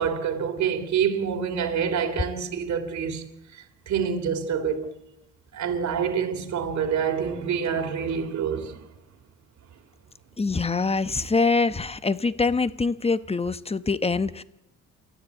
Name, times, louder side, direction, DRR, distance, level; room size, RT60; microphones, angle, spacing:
voice 1, 0.0-3.2 3.9-4.9 5.5-8.8, right 7 dB, 65° right, 3.2 m, -26 dB
voice 2, 10.4-14.4, left 4 dB, 20° left, 1.0 m, -24 dB
29.0 x 13.5 x 8.3 m
cardioid pair, 90°, 30 cm